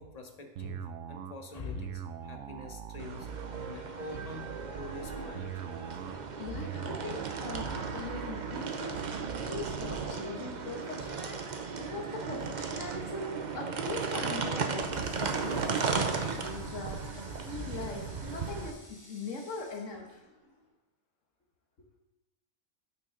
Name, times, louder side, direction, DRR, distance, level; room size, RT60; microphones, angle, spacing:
voice 1, 0.0-3.3 3.7-4.5 4.7-5.6, left 3 dB, 35° left, 4 dB, 0.8 m, -44 dB
sound 1, 0.6-10.2, right 8 dB, 65° right, 0.9 m, -42 dB
sound 2, 3.0-18.7, right 5 dB, 45° right, 0.6 m, -36 dB
voice 2, 6.4-9.0 9.4-11.3 11.8-20.2, left 3 dB, 60° left, 1 dB, 1.6 m, -41 dB
Water tap faucet, 14.8-20.7, left 1 dB, 15° left, 1.3 m, -56 dB
9.1 x 6.2 x 3.8 m, 0.99 s
omnidirectional pair, 1.5 m